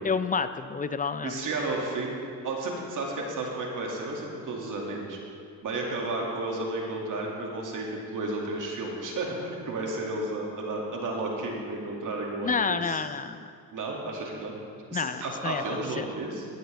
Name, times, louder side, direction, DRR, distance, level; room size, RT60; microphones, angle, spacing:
voice 1, 0.0-1.4 12.4-13.5 14.9-15.6 16.0-16.1, left 5 dB, 20° left, 12 dB, 0.5 m, -29 dB
voice 2, 1.2-2.2 2.4-5.2 5.6-13.0 13.7-14.6 14.9-16.5, right 2 dB, 55° right, -1 dB, 2.4 m, -32 dB
16.0 x 9.4 x 3.5 m, 2.3 s
supercardioid pair, 70°, 37 cm